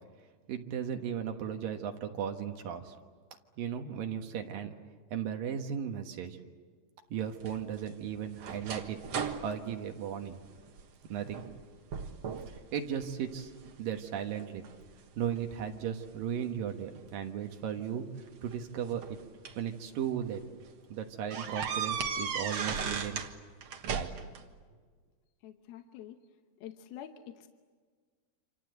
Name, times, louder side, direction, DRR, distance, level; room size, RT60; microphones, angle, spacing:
voice 1, 0.5-3.0 3.6-4.7 5.1-6.4 7.1-9.0 9.4-10.4 11.1-11.4 12.5-13.5 13.8-14.6 15.2-18.0 18.4-19.2 19.6-20.4 20.9-23.2 23.9-24.1, right 8 dB, 65° right, 5 dB, 2.6 m, -36 dB
sound 1, 7.4-10.8 11.3-11.6 11.9-12.6 13.0-13.7 14.3-15.8 16.9-17.1 18.3-19.7 20.2-20.4 20.7-20.8 21.3-23.3 23.6-24.4, right 6 dB, 80° right, 1.4 m, -37 dB
voice 2, 25.4-26.2 26.6-27.5, left 10 dB, 70° left, 6 dB, 2.5 m, -46 dB
27.5 x 27.0 x 7.9 m, 1.5 s
omnidirectional pair, 5.3 m